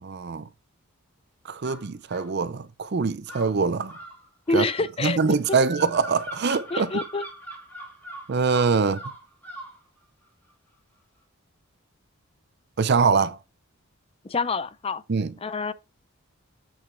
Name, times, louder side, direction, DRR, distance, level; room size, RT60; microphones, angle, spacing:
voice 1, 0.0-0.5 1.5-4.0 4.5-4.7 5.0-7.0 8.3-9.0 12.8-13.4 15.1-15.3, right 5 dB, 50° right, 0.5 m, -23 dB
sound 1, 1.6-2.3 3.3-9.8, right 1 dB, 10° left, 2.5 m, -40 dB
voice 2, 4.5-5.2 5.5-5.6 6.7-7.2 14.2-15.0 15.4-15.7, left 3 dB, 25° left, 0.4 m, -27 dB
8.2 x 6.1 x 3.3 m
head